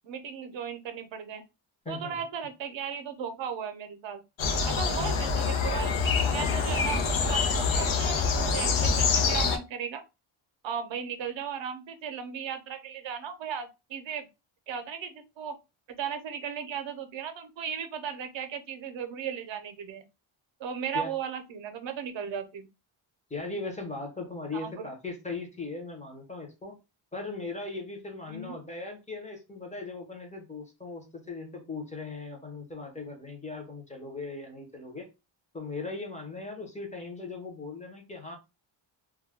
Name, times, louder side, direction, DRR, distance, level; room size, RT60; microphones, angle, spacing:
voice 1, 0.0-1.4 1.9-4.2 4.6-10.0 10.6-14.3 14.7-15.6 16.0-20.0 20.6-22.7 24.5-24.9 28.3-28.6, right 7 dB, 65° right, 0.6 m, -36 dB
voice 2, 1.8-2.2 5.0-5.1 20.9-21.1 23.3-26.8 27.1-35.1 35.5-38.4, left 3 dB, 15° left, 0.6 m, -38 dB
sound 1, 4.4-9.6, left 5 dB, 75° left, 0.7 m, -26 dB
2.3 x 2.2 x 3.3 m
wide cardioid pair, 165°, 48 cm